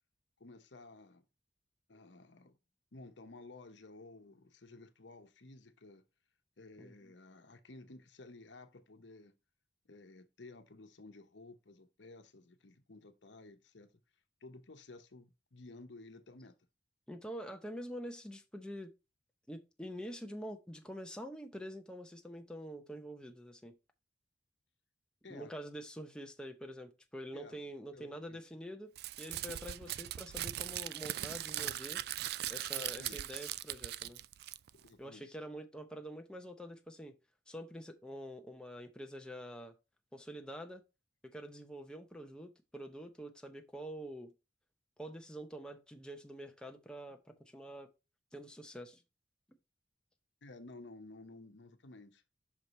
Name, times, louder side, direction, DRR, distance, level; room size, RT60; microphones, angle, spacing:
voice 1, 0.4-1.2 1.9-2.6 2.9-6.0 6.6-9.3 9.9-13.9 14.4-16.5 25.2-25.5 27.3-27.6 27.9-28.4 32.7-33.2 34.7-35.3 50.4-52.2, left 2 dB, 80° left, 0.9 m, -54 dB
voice 2, 17.1-18.9 19.5-23.7 25.3-28.9 29.2-32.0 32.5-34.2 35.0-37.2 37.5-39.8 40.1-40.8 41.2-44.3 45.0-47.9 48.3-49.0, equal, 5° left, 0.7 m, -46 dB
Crumpling crinkling, 29.0-34.9, right 13 dB, 60° right, 0.3 m, -40 dB
5.9 x 4.9 x 4.1 m
head